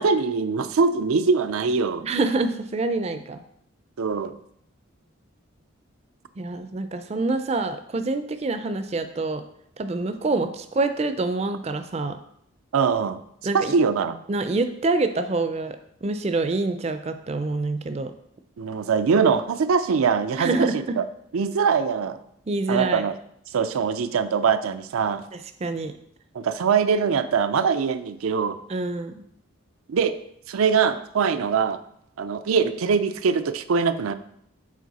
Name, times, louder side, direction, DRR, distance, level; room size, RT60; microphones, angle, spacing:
voice 1, 0.0-2.0 4.0-4.3 12.7-13.2 13.5-14.2 18.6-21.0 21.3-22.2 22.7-23.1 23.5-25.2 26.3-28.6 29.9-30.2 30.5-31.8 32.2-34.1, right 5 dB, 90° right, 10 dB, 0.4 m, -22 dB
voice 2, 2.0-3.4 6.4-9.4 9.8-12.2 13.4-13.7 14.3-15.8 16.0-18.1 20.4-20.7 22.5-23.0 25.3-25.9 28.7-29.2, right 3 dB, 30° right, 9 dB, 0.4 m, -26 dB
7.4 x 4.2 x 4.0 m, 0.71 s
head